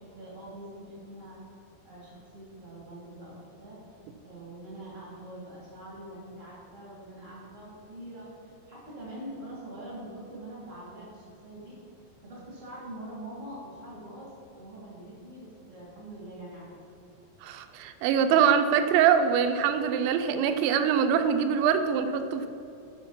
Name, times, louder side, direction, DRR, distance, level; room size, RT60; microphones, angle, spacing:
voice 1, 0.0-1.4 1.8-3.8 4.2-11.8 12.2-16.7, right 1 dB, 40° right, -6 dB, 1.1 m, -44 dB
voice 2, 17.4-22.5, right 7 dB, 85° right, 7 dB, 2.8 m, -24 dB
8.1 x 5.9 x 5.6 m, 2.6 s
omnidirectional pair, 5.2 m